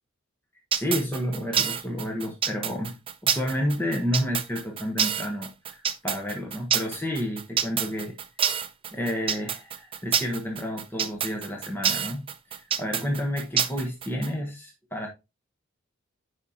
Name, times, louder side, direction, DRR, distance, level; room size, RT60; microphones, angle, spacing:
voice 1, 0.7-2.9 3.2-8.2 8.5-8.6 8.9-15.1, equal, 10° left, 1.1 m, -30 dB
sound 1, 0.7-14.3, right 8 dB, 25° right, 0.6 m, -27 dB
9.7 x 5.0 x 2.9 m
head